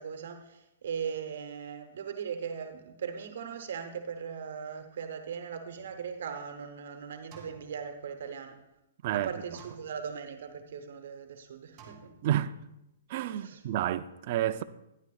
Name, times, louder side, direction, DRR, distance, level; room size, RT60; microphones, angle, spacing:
voice 1, 0.0-8.6 9.1-12.2 13.3-13.6, right 7 dB, 65° right, 1.0 m, -39 dB
sound 1, 5.8-6.7 7.3-8.6 9.6-10.5 11.8-12.7, right 5 dB, 25° right, 2.2 m, -55 dB
voice 2, 12.2-12.5 13.1-14.6, right 12 dB, 40° right, 0.4 m, -30 dB
12.5 x 10.5 x 2.4 m
hypercardioid pair, 155°, 0 cm